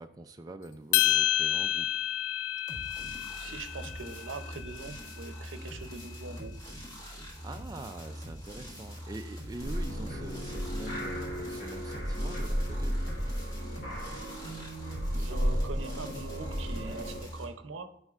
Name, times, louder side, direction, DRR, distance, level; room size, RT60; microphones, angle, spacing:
voice 1, 0.0-2.0 7.4-13.0, right 2 dB, 20° right, 6 dB, 0.3 m, -44 dB
sound 1, 0.9-5.3, left 11 dB, 75° left, 0.3 m, -30 dB
sound 2, 2.7-17.4, equal, 20° left, 1.4 m, -43 dB
voice 2, 3.4-6.5 15.1-18.0, right 3 dB, 80° right, 10 dB, 0.6 m, -42 dB
sound 3, 9.6-17.2, equal, 50° left, 2.4 m, -33 dB
9.4 x 5.4 x 2.4 m, 0.75 s
head